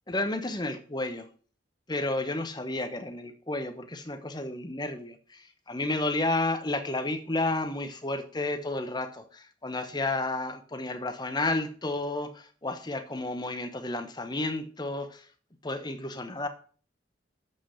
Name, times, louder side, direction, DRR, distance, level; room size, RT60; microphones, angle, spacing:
voice 1, 0.1-1.3 1.9-15.3 15.6-16.5, left 2 dB, 20° left, 1.0 m, -31 dB
7.6 x 6.1 x 5.6 m
head